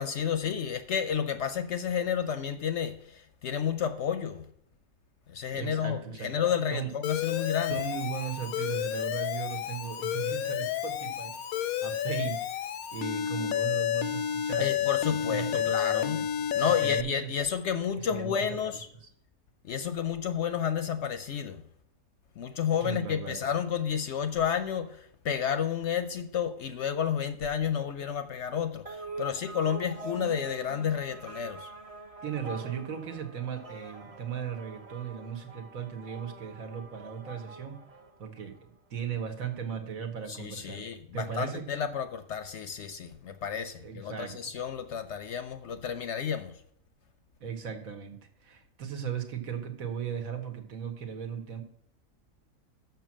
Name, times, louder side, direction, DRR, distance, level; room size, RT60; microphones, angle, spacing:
voice 1, 0.0-4.5 5.3-7.7 14.6-16.3 16.5-18.9 19.7-21.6 22.4-31.7 40.3-46.5, left 8 dB, 65° left, 0.8 m, -31 dB
voice 2, 5.5-6.4 6.7-6.9 7.7-11.4 11.8-12.5 12.9-14.8 15.2-16.5 16.8-17.3 18.0-18.6 19.0-19.1 22.8-23.4 32.2-37.8 38.2-40.9 41.1-41.7 43.7-44.5 47.4-51.6, right 8 dB, 70° right, 1.6 m, -37 dB
Alarm, 7.0-17.0, left 10 dB, 85° left, 1.1 m, -30 dB
sound 1, 28.9-38.6, right 3 dB, 30° right, 0.8 m, -44 dB
6.8 x 6.0 x 7.3 m
omnidirectional pair, 1.5 m